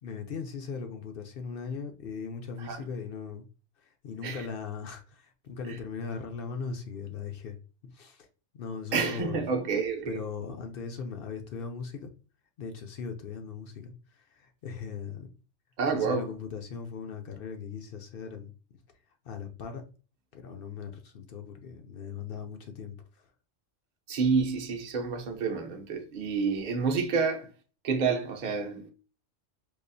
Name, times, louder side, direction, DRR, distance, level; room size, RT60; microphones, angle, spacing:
voice 1, 0.0-3.4 3.8-7.6 7.8-8.3 8.5-9.4 10.1-12.1 12.6-15.3 15.9-18.5 19.2-19.8 20.3-23.3, left 5 dB, 60° left, 0.6 m, -39 dB
voice 2, 8.9-10.2 15.8-16.3 24.1-27.5 27.8-28.9, right 5 dB, 45° right, 0.7 m, -29 dB
4.7 x 2.4 x 2.6 m
omnidirectional pair, 1.3 m